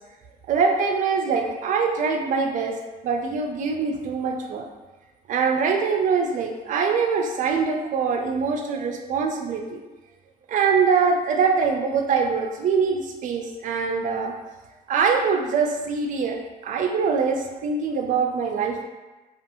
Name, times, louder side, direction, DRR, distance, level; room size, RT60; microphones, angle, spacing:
voice 1, 0.5-2.8 3.0-4.7 5.3-9.8 10.5-14.3 14.9-16.4 16.6-18.8, right 5 dB, 50° right, 3 dB, 0.4 m, -23 dB
2.5 x 2.3 x 2.8 m, 1.2 s
cardioid pair, 110°, 17 cm